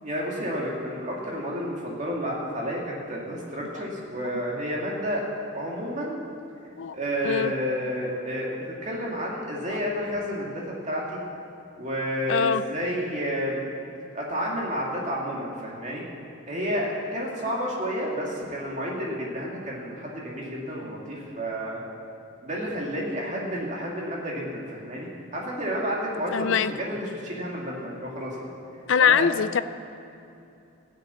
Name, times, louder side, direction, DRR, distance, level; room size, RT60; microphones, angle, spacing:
voice 1, 0.0-5.3 5.5-6.2 6.9-11.2 11.8-13.6 14.1-16.0 16.5-21.8 22.4-28.6 29.0-29.3, equal, 35° right, -3 dB, 2.3 m, -30 dB
voice 2, 12.3-12.6 26.3-26.7 28.9-29.6, left 7 dB, 70° left, 14 dB, 0.4 m, -22 dB
14.5 x 6.8 x 8.4 m, 2.7 s
head